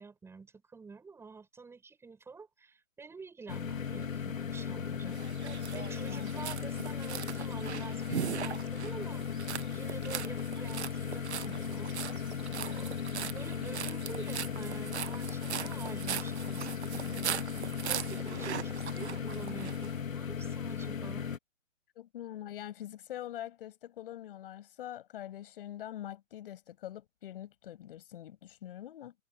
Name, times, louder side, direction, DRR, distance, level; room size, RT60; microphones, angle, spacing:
voice 1, 0.0-5.2 5.7-11.9 12.5-12.9 13.2-21.3, right 4 dB, 5° right, 7.7 m, -48 dB
sound 1, 3.5-21.4, left 7 dB, 80° left, 2.8 m, -37 dB
sound 2, 5.1-19.9, right 10 dB, 55° right, 1.3 m, -40 dB
voice 2, 6.0-6.3 12.7-12.9 22.0-29.1, left 12 dB, 45° left, 7.1 m, -44 dB
hypercardioid pair, 155°, 39 cm